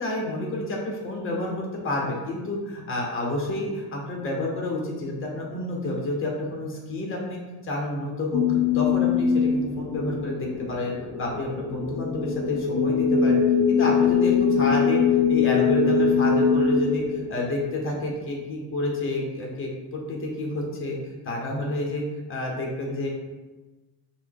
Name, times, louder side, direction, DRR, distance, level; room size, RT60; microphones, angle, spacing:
voice 1, 0.0-8.4 8.7-13.4 13.7-15.0 15.3-21.0 21.2-22.0 22.3-23.1, left 2 dB, 30° left, -1 dB, 1.1 m, -29 dB
sound 1, 8.3-18.1, left 6 dB, 60° left, 0.6 m, -22 dB
5.7 x 2.3 x 3.7 m, 1.2 s
cardioid pair, 110°, 40 cm